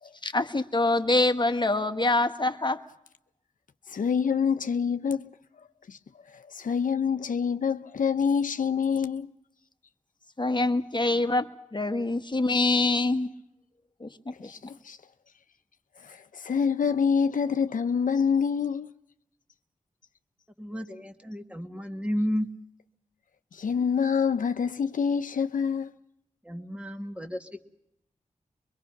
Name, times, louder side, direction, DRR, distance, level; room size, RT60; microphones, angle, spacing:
voice 1, 0.2-2.8 10.4-13.3 14.0-14.1 14.4-14.5, left 2 dB, 35° left, 1.2 m, -25 dB
voice 2, 3.9-5.3 5.9-6.0 6.5-9.3 14.4-14.6 14.8-15.0 16.0-18.9 23.5-25.9, left 6 dB, 85° left, 0.7 m, -26 dB
voice 3, 20.6-22.5 26.5-27.6, equal, 10° right, 1.8 m, -32 dB
23.0 x 22.5 x 5.9 m
cardioid pair, 50°, 13 cm